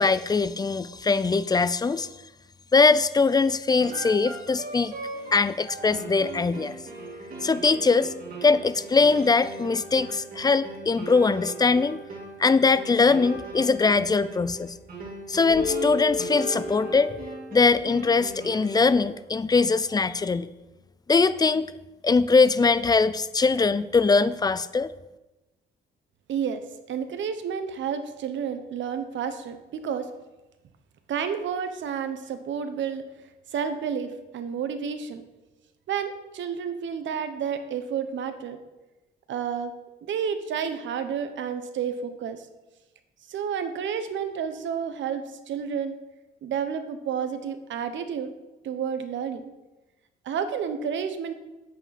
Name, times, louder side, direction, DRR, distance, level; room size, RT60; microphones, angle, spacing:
voice 1, 0.0-2.1 2.7-4.9 5.3-6.8 7.4-8.1 8.4-12.0 12.4-14.7 15.3-17.1 17.5-20.5 21.1-21.7 22.0-24.9, left 4 dB, 20° left, 15 dB, 0.4 m, -21 dB
sound 1, 3.8-19.1, right 3 dB, 45° right, 3.4 m, -39 dB
sound 2, 15.5-19.0, left 6 dB, 65° left, 2.3 m, -35 dB
voice 2, 26.3-30.1 31.1-33.1 33.5-35.2 35.9-38.6 39.3-39.7 40.1-42.5 43.3-46.0 46.4-48.3 48.6-49.5 50.2-51.3, right 7 dB, 70° right, 9 dB, 1.1 m, -30 dB
9.7 x 8.4 x 4.2 m, 1.0 s
cardioid pair, 90°, 20 cm